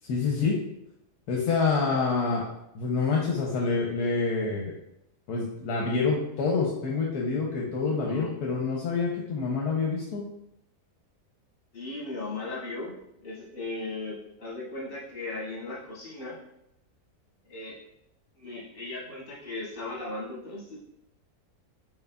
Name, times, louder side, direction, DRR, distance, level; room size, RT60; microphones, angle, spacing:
voice 1, 0.1-0.6 1.3-2.4 2.7-4.7 5.3-10.2, left 4 dB, 75° left, -2 dB, 1.2 m, -27 dB
voice 2, 7.8-8.3 11.7-16.4 17.5-17.8 18.4-20.8, left 2 dB, 50° left, -5 dB, 1.8 m, -37 dB
5.8 x 3.7 x 2.3 m, 0.81 s
omnidirectional pair, 1.7 m